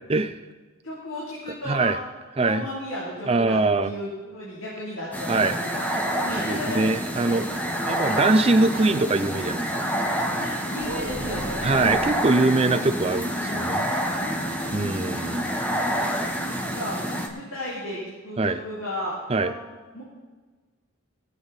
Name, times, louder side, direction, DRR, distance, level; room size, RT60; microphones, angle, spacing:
voice 1, 0.8-1.9 2.4-6.9 7.2-7.4 10.4-11.8 14.1-15.2 16.4-17.0 17.3-19.5 19.9-20.0, left 1 dB, 80° left, -7 dB, 3.3 m, -35 dB
voice 2, 1.7-2.0 2.4-2.6 3.3-3.9 5.3-5.5 6.3-7.5 7.9-9.9 11.6-13.9 14.7-15.5 18.4-18.6 19.3-19.5, right 3 dB, 30° right, 8 dB, 0.5 m, -23 dB
sound 1, 5.1-17.3, equal, 10° left, 1.1 m, -28 dB
sound 2, 10.8-12.2 13.9-14.9 15.2-15.3 15.7-15.9, right 1 dB, 75° right, 1.3 m, -37 dB
20.0 x 8.0 x 4.1 m, 1.4 s
head